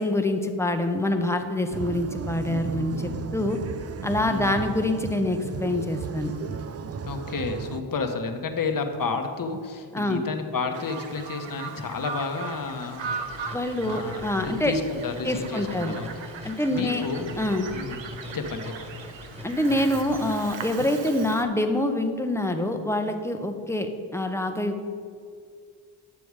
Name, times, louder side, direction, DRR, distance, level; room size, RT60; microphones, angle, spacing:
voice 1, 0.0-3.6 4.0-6.3 9.9-10.2 13.5-14.8 15.2-16.0 16.4-17.0 17.4-17.7 19.4-24.9, left 1 dB, 5° left, 5 dB, 0.8 m, -26 dB
sound 1, 1.7-7.8, right 6 dB, 35° right, 0.4 m, -35 dB
voice 2, 4.2-4.6 7.0-13.1 13.5-13.6 13.8-16.2 16.4-17.3 17.7-18.0 18.3-18.9, left 4 dB, 40° left, 5 dB, 1.1 m, -31 dB
Bird vocalization bird call bird song, 10.7-21.4, right 5 dB, 65° right, 1.0 m, -39 dB
sound 2, 13.0-20.3, left 1 dB, 15° right, 1.4 m, -42 dB
9.8 x 6.9 x 4.8 m, 2.2 s
cardioid pair, 75°, 49 cm